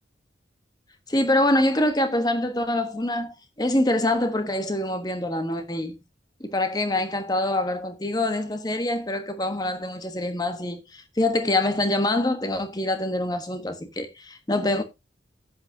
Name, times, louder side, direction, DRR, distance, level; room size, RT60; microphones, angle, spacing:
voice 1, 1.1-6.0 6.4-14.8, left 1 dB, 20° left, 1.2 m, -25 dB
11.0 x 8.6 x 2.8 m
head